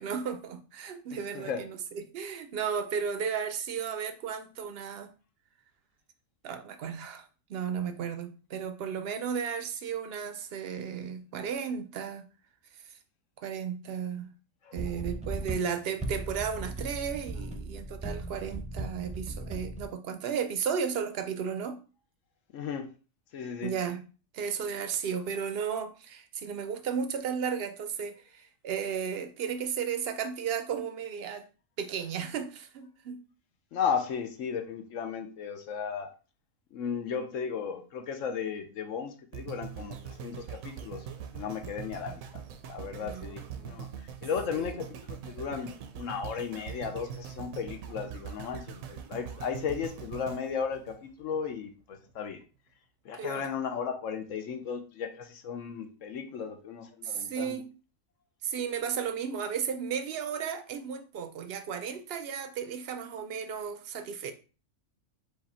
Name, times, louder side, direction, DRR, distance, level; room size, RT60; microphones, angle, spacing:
voice 1, 0.0-5.1 6.4-12.3 12.9-13.0 13.4-14.3 14.7-21.8 23.6-24.0 24.3-31.4 31.8-33.2 43.0-43.7 44.5-44.7 53.1-53.5 56.4-56.5 57.0-57.7 58.4-64.3, right 7 dB, 60° right, 0.7 m, -34 dB
sound 1, 14.8-19.9, right 2 dB, 5° right, 0.6 m, -37 dB
voice 2, 22.5-22.9 23.3-23.7 33.7-36.1 36.7-41.1 41.3-42.2 42.7-43.9 44.2-52.4 53.0-57.6, left 6 dB, 70° left, 1.0 m, -35 dB
sound 2, 39.3-51.5 52.1-52.2, right 8 dB, 75° right, 1.0 m, -42 dB
4.8 x 2.4 x 4.2 m
omnidirectional pair, 1.5 m